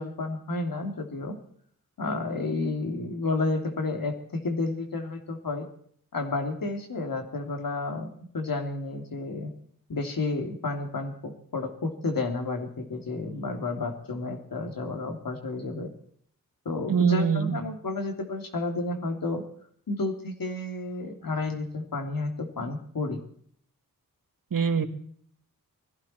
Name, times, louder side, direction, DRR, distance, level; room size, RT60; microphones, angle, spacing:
voice 1, 0.0-1.3 2.0-5.6 6.1-9.5 9.9-15.9 16.6-19.4 19.9-23.2, left 3 dB, 70° left, 4 dB, 3.2 m, -31 dB
voice 2, 16.9-17.6 24.5-24.9, right 6 dB, 65° right, 7 dB, 2.0 m, -24 dB
20.5 x 15.5 x 4.5 m, 0.63 s
cardioid pair, 65°, 35 cm